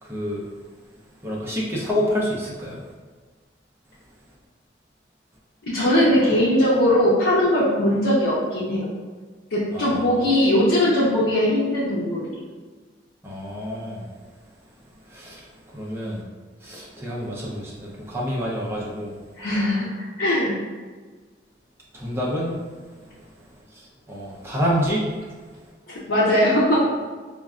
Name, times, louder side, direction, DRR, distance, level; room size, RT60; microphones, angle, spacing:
voice 1, 0.0-0.4 1.2-2.8 9.7-10.3 13.2-14.0 15.1-15.5 15.7-16.2 16.6-19.1 21.9-22.6 23.7-25.1, equal, 15° right, -5 dB, 0.6 m, -28 dB
voice 2, 5.7-8.9 9.5-12.4 19.4-20.6 25.9-27.0, left 1 dB, 85° left, -9 dB, 0.7 m, -20 dB
5.1 x 2.2 x 2.4 m, 1.4 s
head